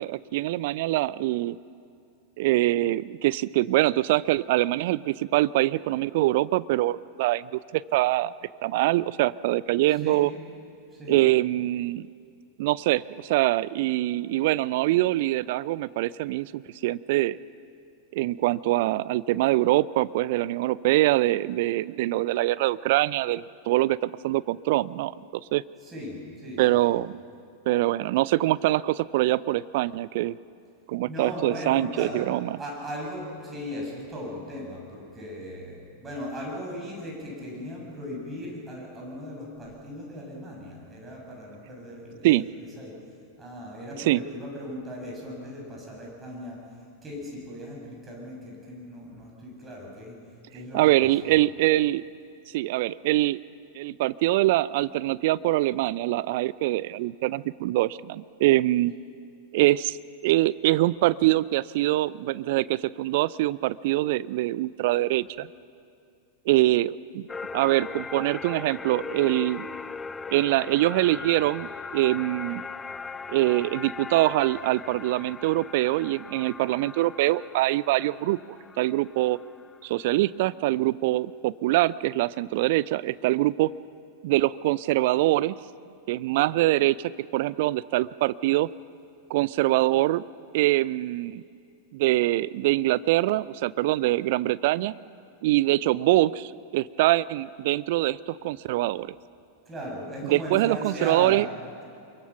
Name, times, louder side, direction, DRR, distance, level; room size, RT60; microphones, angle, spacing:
voice 1, 0.0-1.6 2.4-8.3 8.6-10.3 11.1-12.1 12.6-17.4 18.1-25.1 25.5-25.6 26.6-27.2 27.7-30.4 30.9-32.6 42.2-42.5 44.0-44.2 50.7-52.0 52.5-53.4 53.7-58.9 59.5-60.0 60.2-65.5 66.5-67.3 67.5-69.7 70.3-72.6 73.3-79.4 79.8-83.7 84.2-85.6 86.1-88.7 89.3-90.2 90.5-91.4 91.9-94.9 95.4-99.1 100.2-101.5, right 17 dB, 50° right, 19 dB, 0.4 m, -24 dB
voice 2, 9.9-10.2 10.9-11.2 25.8-27.0 31.1-32.2 32.6-42.5 42.8-43.0 43.4-46.6 47.0-50.2 50.5-51.3 99.6-101.5, equal, 15° right, -2 dB, 7.5 m, -37 dB
sound 1, 67.3-79.9, left 4 dB, 15° left, 0.5 m, -39 dB
24.5 x 22.5 x 6.0 m, 2.4 s
figure-of-eight pair, 90°, 0 cm